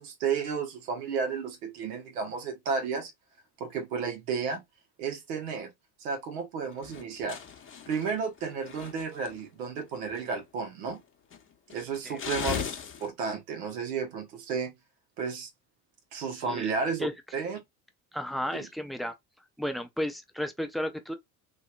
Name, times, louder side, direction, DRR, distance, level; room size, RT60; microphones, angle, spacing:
voice 1, 0.0-3.1 3.6-4.6 5.0-5.7 6.0-7.4 7.9-11.0 11.7-12.6 13.0-14.7 15.2-15.5 16.1-17.1 17.3-17.6 18.5-18.7, right 5 dB, 80° right, 1.3 m, -32 dB
sound 1, 6.7-9.4 9.8-10.4 10.9-11.0 11.3-13.1, left 7 dB, 25° left, 1.0 m, -37 dB
voice 2, 18.1-19.1 19.6-21.1, equal, ahead, 0.3 m, -33 dB
2.9 x 2.9 x 2.3 m
hypercardioid pair, 75°, 46 cm